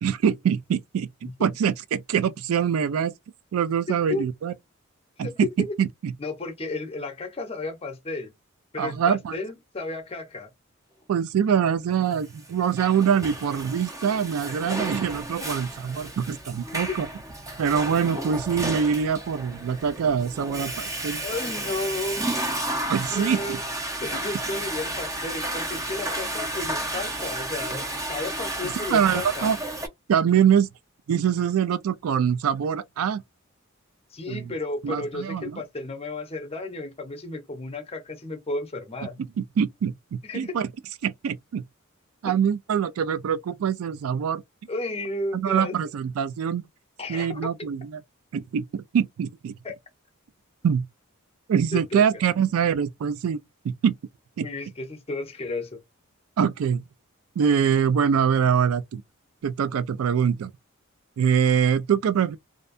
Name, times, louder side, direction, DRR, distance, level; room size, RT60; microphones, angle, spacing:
voice 1, 0.0-3.1 3.5-4.5 5.2-6.1 8.8-9.4 11.1-17.1 17.6-21.2 22.9-23.6 28.6-29.6 30.1-30.7 31.1-33.2 34.3-34.5 34.8-35.6 39.6-40.7 41.0-41.6 42.2-44.4 45.3-46.6 47.1-48.0 48.3-49.5 50.6-50.8 51.5-53.4 53.6-54.0 54.4-54.5 56.4-56.8 57.4-59.0 59.4-60.5 61.2-62.4, right 7 dB, 80° right, 0.3 m, -24 dB
voice 2, 3.9-4.3 5.2-5.8 6.2-8.3 8.7-10.5 15.5-15.6 21.2-22.3 23.1-23.6 24.0-29.5 34.1-39.2 40.2-40.5 42.2-42.4 44.7-45.8 47.0-47.4 49.6-49.7 51.7-52.0 54.4-55.8, left 2 dB, 30° left, 0.6 m, -33 dB
Water / Toilet flush, 12.4-29.9, right 1 dB, 15° right, 0.5 m, -32 dB
2.5 x 2.1 x 2.5 m
head